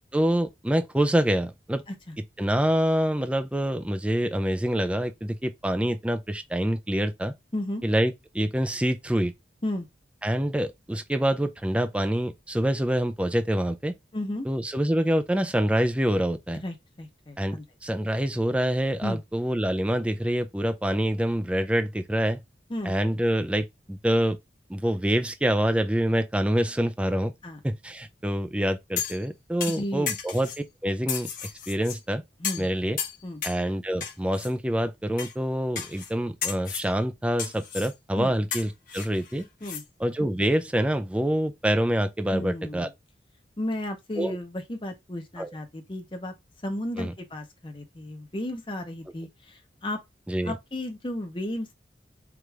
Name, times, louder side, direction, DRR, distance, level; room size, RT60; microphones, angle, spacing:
voice 1, 0.1-1.8 2.4-7.3 7.8-9.3 10.2-13.9 14.4-16.6 17.4-22.4 22.8-24.4 24.7-27.3 27.6-30.5 30.8-31.3 31.7-32.2 32.6-33.0 33.4-39.5 40.0-42.9 44.2-44.4 45.4-45.5 47.0-47.1 50.3-50.6, right 1 dB, 5° right, 0.3 m, -26 dB
voice 2, 7.5-7.8 9.6-9.9 14.1-14.5 16.6-17.6 19.0-19.2 22.7-22.9 27.4-27.6 29.7-30.1 32.4-32.7 33.2-33.4 38.2-38.3 39.6-39.8 42.3-42.9 43.6-46.3 46.6-50.0 50.4-51.7, left 1 dB, 25° left, 0.7 m, -33 dB
sound 1, 29.0-29.3 29.6-30.6 31.1-32.0 32.4-32.7 33.0-33.6 34.0-34.5 35.2-35.3 35.8-36.1 36.4-36.9 37.4-37.9 38.5-39.8 40.2-40.3, left 7 dB, 45° left, 1.1 m, -33 dB
4.8 x 2.5 x 3.2 m
head